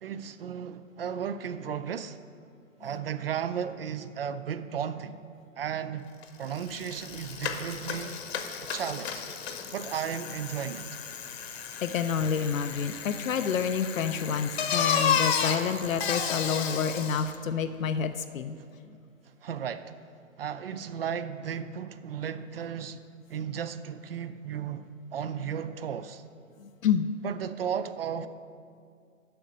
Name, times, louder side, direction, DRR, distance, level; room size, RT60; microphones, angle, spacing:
voice 1, 0.0-2.2 2.8-5.2 5.6-8.2 8.6-9.3 9.7-10.9 19.4-19.9 20.4-23.0 23.3-26.2 27.2-28.3, right 8 dB, 45° right, 0.4 m, -34 dB
Bicycle, 6.2-6.3 6.6-17.4, left 7 dB, 50° left, 1.0 m, -32 dB
voice 2, 11.5-18.6 26.6-27.1, left 7 dB, 75° left, 0.6 m, -29 dB
7.8 x 6.3 x 6.8 m
hypercardioid pair, 140°, 41 cm